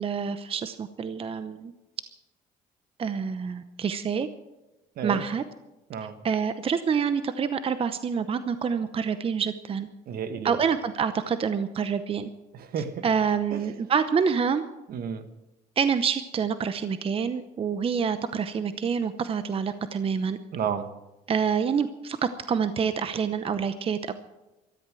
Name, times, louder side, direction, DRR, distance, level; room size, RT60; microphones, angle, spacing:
voice 1, 0.0-1.7 3.0-4.3 5.0-5.4 6.2-9.9 10.4-12.3 13.0-14.6 15.8-20.4 21.3-24.1, right 6 dB, 35° right, 0.8 m, -27 dB
voice 2, 5.9-6.2 10.1-10.6 12.5-13.1 13.5-13.6 14.9-15.3 20.5-20.9, right 7 dB, 60° right, 1.4 m, -32 dB
13.5 x 13.0 x 7.6 m
cardioid pair, 110°, 17 cm